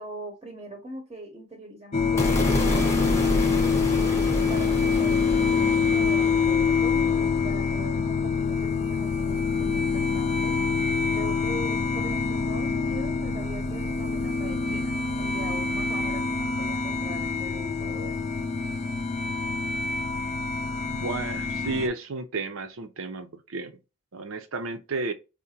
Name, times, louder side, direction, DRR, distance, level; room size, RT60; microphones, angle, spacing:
voice 1, 0.0-3.5 4.2-10.5 11.1-14.9 15.2-18.2, right 1 dB, 25° right, 0.7 m, -41 dB
sound 1, 1.9-21.9, left 5 dB, 30° left, 0.4 m, -26 dB
sound 2, 2.2-8.4, left 1 dB, 15° left, 0.7 m, -30 dB
voice 2, 20.9-23.8 24.1-25.1, right 3 dB, 75° right, 0.6 m, -32 dB
4.8 x 2.1 x 2.8 m
head